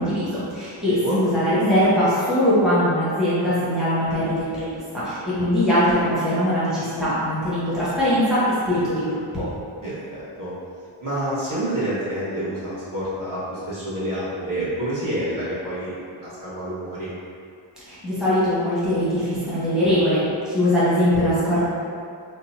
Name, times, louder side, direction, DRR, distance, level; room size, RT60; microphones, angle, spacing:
voice 1, 0.0-9.4 17.9-21.6, equal, ahead, -12 dB, 0.9 m, -21 dB
voice 2, 0.8-1.2 9.8-10.5 11.0-17.1, right 1 dB, 40° right, -10 dB, 1.0 m, -28 dB
2.8 x 2.2 x 4.0 m, 2.3 s
wide cardioid pair, 145°, 48 cm